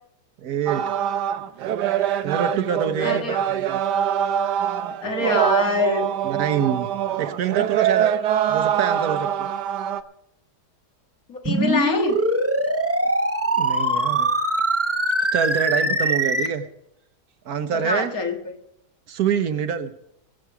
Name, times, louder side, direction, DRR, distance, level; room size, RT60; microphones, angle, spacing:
voice 1, 0.4-0.8 2.2-3.8 6.2-6.9 7.2-8.1 8.5-9.5 13.6-14.3 15.3-16.7 17.4-18.1 19.1-19.9, right 8 dB, 70° right, 10 dB, 1.3 m, -25 dB
sound 1, 0.7-10.0, right 10 dB, 85° right, 1.3 m, -24 dB
voice 2, 3.0-3.4 5.0-6.1 11.3-12.2 17.8-18.5, left 4 dB, 60° left, 3 dB, 2.1 m, -25 dB
sound 2, 11.5-16.5, right 1 dB, 15° right, 0.6 m, -22 dB
21.0 x 7.6 x 4.7 m, 0.77 s
omnidirectional pair, 1.8 m